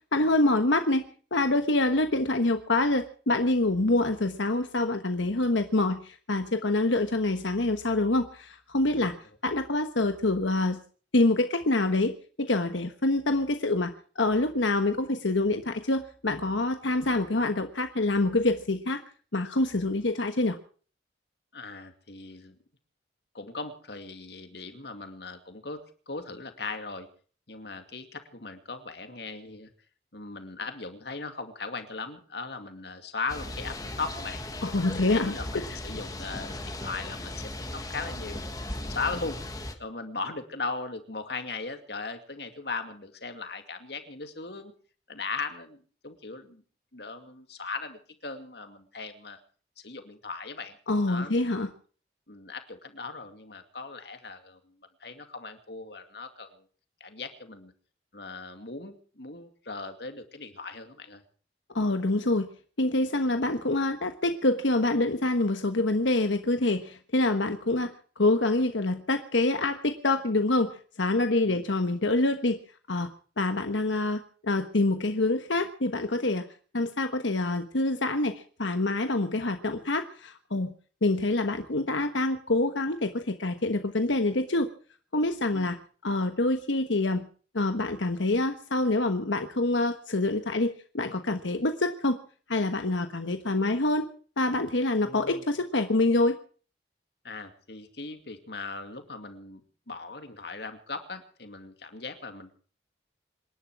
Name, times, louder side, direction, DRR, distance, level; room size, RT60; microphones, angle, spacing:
voice 1, 0.1-1.1 1.3-9.1 9.4-10.8 11.1-19.0 19.3-20.6 34.6-35.6 50.9-51.7 61.7-62.5 62.8-67.9 68.2-72.6 72.9-73.1 73.4-76.5 76.7-80.7 81.0-84.7 85.1-85.8 86.0-87.2 87.5-92.2 92.5-94.1 94.4-96.4, left 2 dB, 90° left, 7 dB, 1.3 m, -26 dB
voice 2, 21.5-22.5 23.3-27.1 27.5-29.7 30.1-34.4 34.8-38.4 38.8-39.4 39.8-44.7 45.1-46.6 46.9-49.4 49.8-50.8 51.1-51.5 52.3-56.7 57.0-57.7 58.1-61.2 71.4-71.6 85.5-85.7 95.0-95.4 97.2-99.6 99.9-102.6, left 4 dB, 60° left, 7 dB, 2.4 m, -38 dB
sound 1, 33.3-39.7, left 1 dB, 20° left, 1.7 m, -37 dB
26.5 x 11.5 x 4.7 m, 0.42 s
head